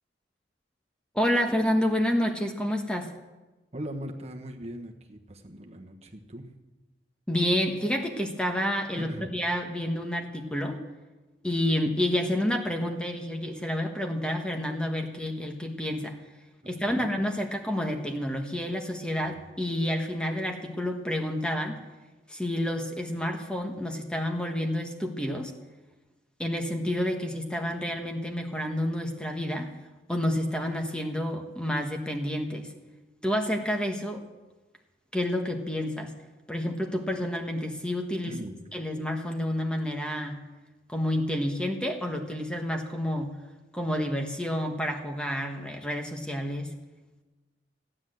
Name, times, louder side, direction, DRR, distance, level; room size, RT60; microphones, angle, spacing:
voice 1, 1.1-3.1 7.3-10.8 11.4-16.1 16.6-21.8 22.3-25.5 26.4-29.7 30.1-32.7 33.2-34.2 35.1-36.1 36.5-38.3 38.7-40.4 40.9-43.3 43.7-46.7, left 1 dB, 5° left, 3 dB, 1.3 m, -29 dB
voice 2, 3.7-6.5 8.9-9.4 16.8-17.1 38.3-38.6, equal, 35° right, 3 dB, 1.3 m, -39 dB
15.0 x 9.9 x 7.7 m, 1.2 s
head